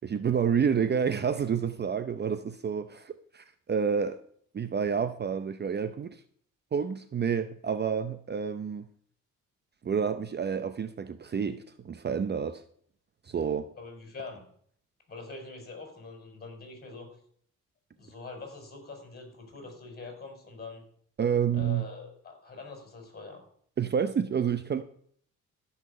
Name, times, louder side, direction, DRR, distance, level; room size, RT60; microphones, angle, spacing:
voice 1, 0.0-4.2 4.5-6.2 6.7-8.9 9.8-12.6 13.2-13.7 21.2-21.9 23.8-24.8, right 7 dB, 35° right, 11 dB, 0.7 m, -29 dB
voice 2, 13.8-14.5 15.1-17.1 18.0-20.8 21.5-23.4, left 3 dB, 30° left, 3 dB, 5.0 m, -44 dB
14.0 x 5.8 x 6.7 m, 0.63 s
cardioid pair, 90°, 30 cm